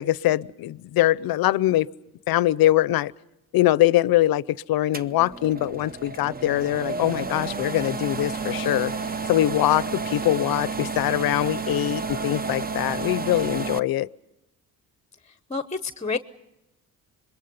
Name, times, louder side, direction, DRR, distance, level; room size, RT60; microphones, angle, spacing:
voice 1, 0.0-1.9 2.3-3.1 3.5-8.9 9.3-14.1, left 14 dB, 70° left, 20 dB, 0.7 m, -22 dB
sound 1, 4.9-13.8, right 4 dB, 25° right, 0.8 m, -31 dB
sound 2, 8.0-13.6, right 2 dB, 50° right, 7.5 m, -55 dB
voice 2, 15.3-16.2, left 4 dB, 20° left, 11 dB, 0.9 m, -29 dB
26.5 x 21.5 x 5.4 m, 0.92 s
cardioid pair, 75°, 37 cm